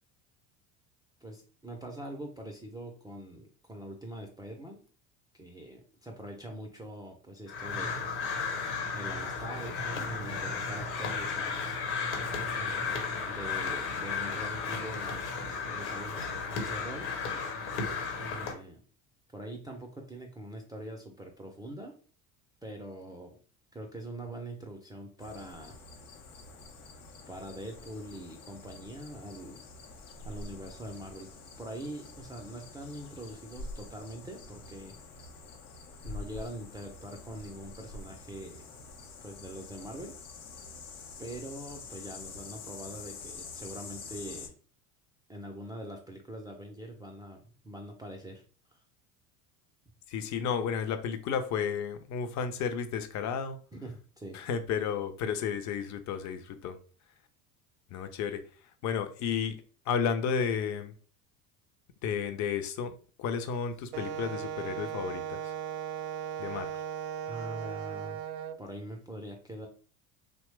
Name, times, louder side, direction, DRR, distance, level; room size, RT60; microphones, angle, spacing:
voice 1, 1.2-4.8 5.3-8.0 8.9-11.6 12.5-13.0 13.3-15.2 15.5-17.3 18.2-18.8 19.3-21.9 22.6-23.4 23.7-25.8 27.3-29.6 30.2-31.3 31.6-34.9 36.0-38.7 39.2-40.2 41.2-44.5 45.3-48.4 48.7-48.8 53.7-54.4 67.3-68.2 68.6-69.7, right 1 dB, 10° right, 1 dB, 0.4 m, -43 dB
Crow, 7.5-18.5, left 5 dB, 60° left, 1.1 m, -34 dB
sound 1, 25.2-44.5, left 3 dB, 80° left, 0.7 m, -47 dB
voice 2, 50.1-53.6 54.3-56.7 57.9-58.4 58.8-59.6 59.9-60.9 62.0-62.9 63.2-65.4 66.4-66.7, left 7 dB, 40° left, 9 dB, 0.5 m, -32 dB
Wind instrument woodwind instrument, 63.9-68.6, right 9 dB, 75° right, 0.5 m, -37 dB
2.9 x 2.1 x 3.1 m, 0.41 s
hypercardioid pair, 75°, 44 cm